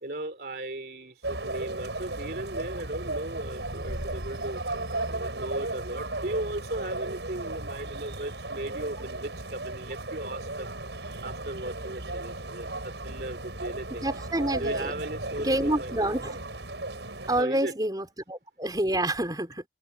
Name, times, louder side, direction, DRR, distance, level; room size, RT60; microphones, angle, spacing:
voice 1, 0.0-4.6 5.1-10.7 11.2-14.1 14.6-16.0 17.3-17.7, right 1 dB, 60° right, 3.0 m, -37 dB
sound 1, 1.2-17.4, right 2 dB, 75° right, 6.7 m, -35 dB
voice 2, 14.0-14.9 15.4-16.4 17.3-19.6, right 1 dB, 20° right, 4.5 m, -28 dB
open air
head